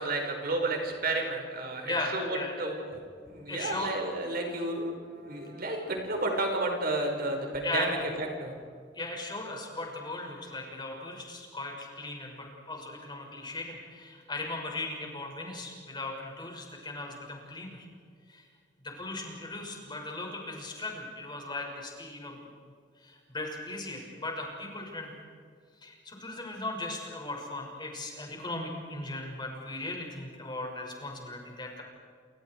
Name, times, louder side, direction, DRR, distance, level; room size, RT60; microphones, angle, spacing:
voice 1, 0.0-3.0 3.3-8.5, right 2 dB, 55° right, 2 dB, 5.2 m, -32 dB
voice 2, 1.8-2.6 3.5-3.9 7.6-7.9 8.9-17.9 18.3-18.4 18.8-22.4 23.0-25.1 25.8-31.8, left 2 dB, 25° left, 0 dB, 6.4 m, -38 dB
29.5 x 28.0 x 4.8 m, 2.1 s
head